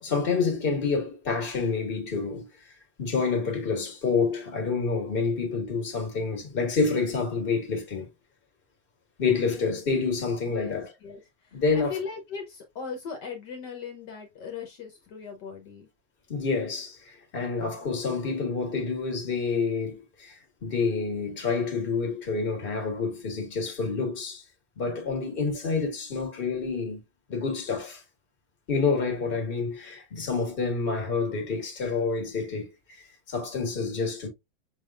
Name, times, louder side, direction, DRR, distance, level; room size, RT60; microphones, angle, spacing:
voice 1, 0.0-8.1 9.2-10.9 11.5-12.0 16.3-24.4 24.7-27.0 27.3-28.0 28.7-34.3, left 4 dB, 30° left, 1.6 m, -28 dB
voice 2, 10.4-15.9, left 6 dB, 65° left, 1.5 m, -39 dB
6.0 x 3.4 x 2.3 m
omnidirectional pair, 2.1 m